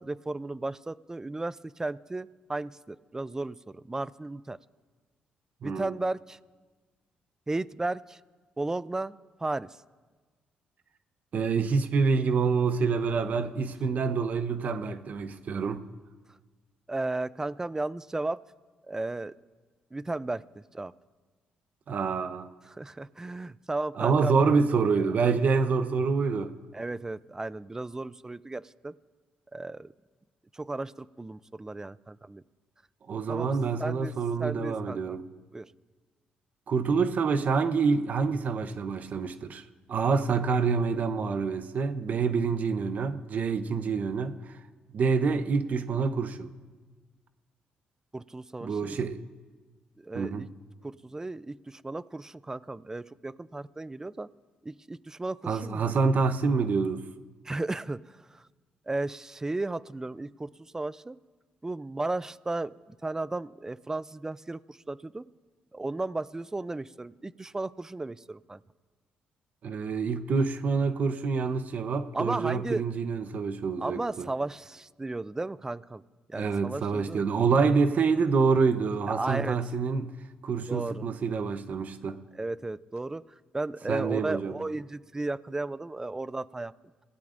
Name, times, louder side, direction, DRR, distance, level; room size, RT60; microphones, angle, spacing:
voice 1, 0.0-4.6 5.6-6.4 7.5-8.2 8.6-9.8 16.9-18.4 18.9-19.3 19.9-20.9 22.7-24.4 26.7-29.0 29.5-29.9 30.5-32.4 33.3-33.5 33.8-34.1 34.4-35.2 35.5-35.7 48.1-49.0 50.0-50.5 50.8-54.3 54.6-55.9 57.4-58.5 58.9-61.2 61.6-62.7 63.0-65.2 65.7-68.6 72.1-72.8 73.8-76.0 76.3-77.3 79.1-79.6 80.7-81.0 82.3-83.2 83.5-86.7, right 2 dB, 15° right, 0.5 m, -34 dB
voice 2, 5.6-5.9 11.3-15.8 21.9-22.5 24.0-26.5 33.1-35.2 36.7-39.6 39.9-44.6 44.9-46.5 48.6-49.2 50.1-50.5 55.5-57.0 69.6-74.3 76.3-80.1 80.4-82.2 83.9-84.5, right 5 dB, 55° right, 0.9 m, -27 dB
25.5 x 17.0 x 2.6 m
cardioid pair, 75°, 3 cm